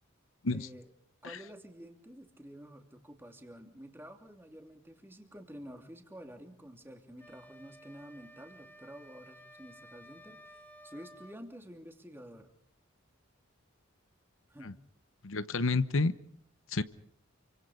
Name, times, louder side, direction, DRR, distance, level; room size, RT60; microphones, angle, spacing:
voice 1, 0.5-0.9 1.2-12.5 14.5-14.8, equal, 10° right, 4 dB, 3.0 m, -50 dB
sound 1, 7.2-11.4, equal, 10° left, 2.4 m, -55 dB
voice 2, 15.2-16.1 16.7-16.8, left 3 dB, 70° left, 13 dB, 1.0 m, -30 dB
28.5 x 25.5 x 5.1 m, 0.65 s
head